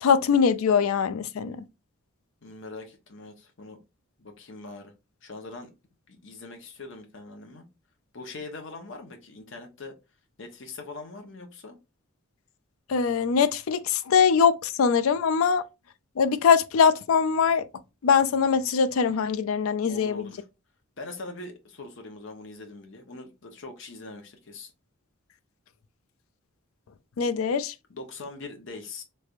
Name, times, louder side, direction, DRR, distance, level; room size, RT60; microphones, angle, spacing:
voice 1, 0.0-1.6 12.9-15.6 16.2-17.6 18.0-20.3 27.2-27.7, left 6 dB, 75° left, 0.4 m, -22 dB
voice 2, 2.4-3.8 4.2-4.9 5.2-5.7 6.1-7.6 8.1-9.9 10.4-11.8 19.9-20.5 21.0-24.7 27.9-29.0, left 3 dB, 60° left, 0.9 m, -42 dB
3.3 x 3.2 x 2.4 m
head